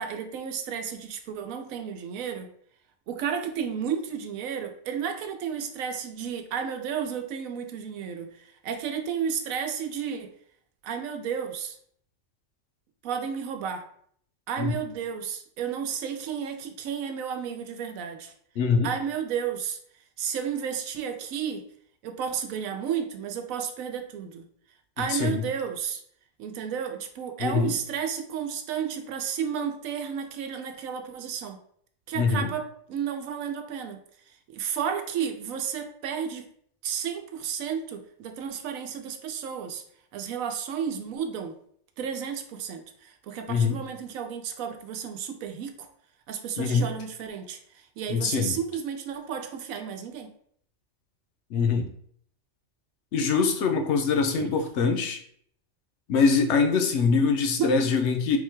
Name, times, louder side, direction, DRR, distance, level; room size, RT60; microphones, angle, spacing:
voice 1, 0.0-2.5 3.1-10.3 10.8-11.8 13.0-13.9 14.5-18.3 18.8-19.8 20.2-21.6 22.0-24.5 25.0-26.0 26.4-31.6 32.1-34.0 34.5-36.4 36.8-39.8 40.1-41.6 42.0-45.9 46.3-47.6 48.0-50.3 54.4-54.6 57.6-57.7, right 7 dB, 85° right, 6 dB, 1.0 m, -32 dB
voice 2, 18.6-18.9 25.1-25.4 27.4-27.8 32.1-32.5 43.5-43.8 46.6-46.9 48.1-48.6 51.5-51.9 53.1-55.2 56.1-58.4, left 5 dB, 65° left, 5 dB, 0.9 m, -23 dB
4.1 x 2.3 x 4.3 m, 0.63 s
omnidirectional pair, 1.4 m